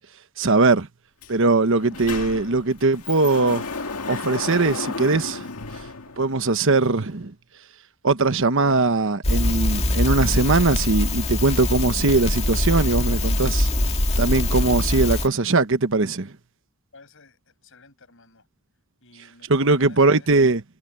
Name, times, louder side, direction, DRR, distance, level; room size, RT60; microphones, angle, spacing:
voice 1, 0.4-0.9 1.3-3.6 4.1-5.4 6.2-7.3 8.0-13.7 14.2-16.3 19.5-20.6, right 3 dB, 60° right, 1.1 m, -20 dB
Sliding door, 1.2-1.3 1.6-6.6, left 4 dB, 90° left, 1.9 m, -33 dB
Crackle, 9.2-15.3, left 1 dB, 30° left, 2.1 m, -23 dB
voice 2, 16.9-18.4 19.0-20.3, left 3 dB, 60° left, 7.7 m, -52 dB
head